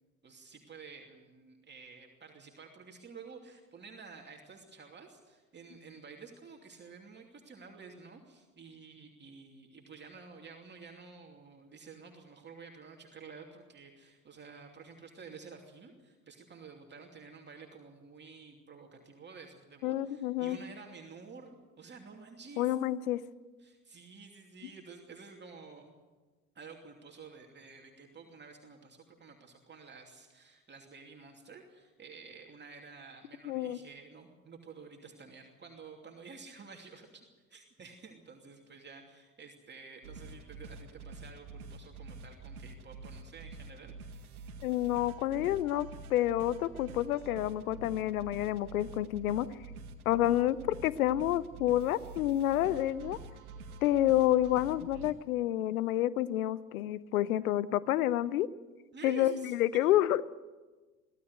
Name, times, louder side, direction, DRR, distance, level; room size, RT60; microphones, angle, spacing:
voice 1, 0.2-22.8 23.6-25.9 26.5-37.2 37.5-44.2 58.9-59.8, right 5 dB, 25° right, 1 dB, 2.8 m, -51 dB
voice 2, 19.8-20.6 22.6-23.2 33.4-33.8 44.6-49.5 50.1-53.2 53.8-58.5 59.0-60.2, left 13 dB, 70° left, 19 dB, 0.9 m, -29 dB
sound 1, 40.0-55.1, right 3 dB, 75° right, 2.1 m, -47 dB
24.0 x 16.0 x 8.0 m, 1.3 s
figure-of-eight pair, 70°, 45 cm